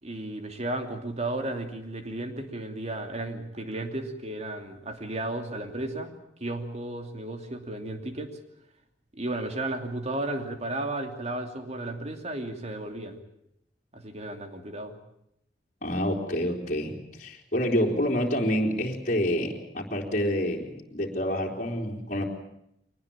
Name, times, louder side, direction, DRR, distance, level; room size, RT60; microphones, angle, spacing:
voice 1, 0.0-6.1 6.4-8.4 9.1-13.2 13.9-15.0, right 2 dB, 35° right, 5 dB, 2.8 m, -34 dB
voice 2, 15.8-22.3, equal, 40° left, -2 dB, 3.7 m, -28 dB
24.0 x 19.0 x 8.8 m, 0.78 s
head